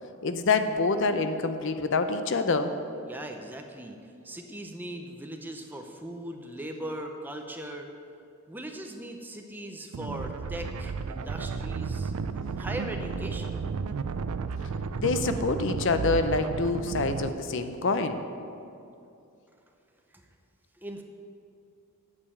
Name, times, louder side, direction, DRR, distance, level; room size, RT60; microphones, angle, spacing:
voice 1, 0.2-2.7 15.0-18.2, left 3 dB, 55° left, 9 dB, 0.6 m, -26 dB
voice 2, 3.0-7.9 8.5-12.1 12.6-13.6 20.1-20.3 20.7-21.0, right 1 dB, 10° right, 3 dB, 0.7 m, -39 dB
sound 1, 9.9-17.3, right 5 dB, 80° right, 0.4 m, -33 dB
8.6 x 6.8 x 8.5 m, 2.6 s
head